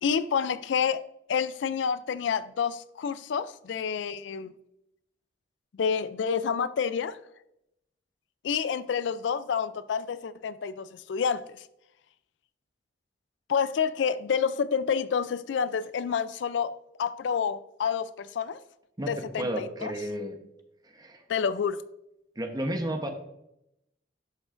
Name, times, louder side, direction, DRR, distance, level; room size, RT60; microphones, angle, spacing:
voice 1, 0.0-4.5 5.7-7.2 8.4-11.7 13.5-16.7 17.0-18.6 19.1-19.9 21.3-21.8, left 6 dB, 75° left, 0.4 m, -29 dB
voice 2, 19.4-20.4 20.8-21.2 22.4-23.1, right 1 dB, 20° right, 0.9 m, -32 dB
11.5 x 6.1 x 2.5 m
head